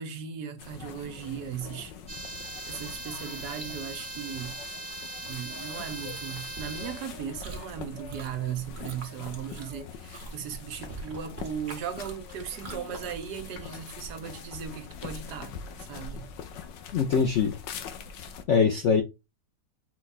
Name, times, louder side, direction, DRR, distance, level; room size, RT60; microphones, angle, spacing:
voice 1, 0.0-1.9 2.6-4.6 5.2-16.3, right 8 dB, 70° right, 1.3 m, -37 dB
sound 1, 0.6-18.4, left 6 dB, 90° left, 1.4 m, -43 dB
sound 2, 2.1-7.2, right 2 dB, 20° right, 1.2 m, -40 dB
Chewing mastication, 5.8-13.6, right 4 dB, 40° right, 1.1 m, -45 dB
voice 2, 16.9-17.5 18.5-19.0, left 6 dB, 70° left, 0.7 m, -22 dB
4.8 x 2.3 x 4.0 m
omnidirectional pair, 1.9 m